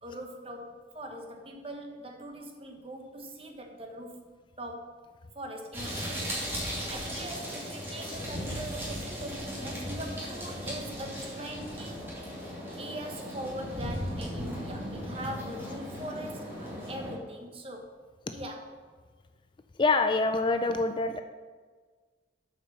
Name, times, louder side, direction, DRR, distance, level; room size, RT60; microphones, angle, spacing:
voice 1, 0.0-4.2 4.6-5.0 5.3-12.1 12.8-17.9 18.3-18.7, right 1 dB, 30° right, 3 dB, 1.1 m, -41 dB
sound 1, 5.7-17.1, equal, 15° right, 2.3 m, -37 dB
voice 2, 19.8-21.2, left 3 dB, 25° left, 8 dB, 0.3 m, -25 dB
8.1 x 5.4 x 6.6 m, 1.5 s
head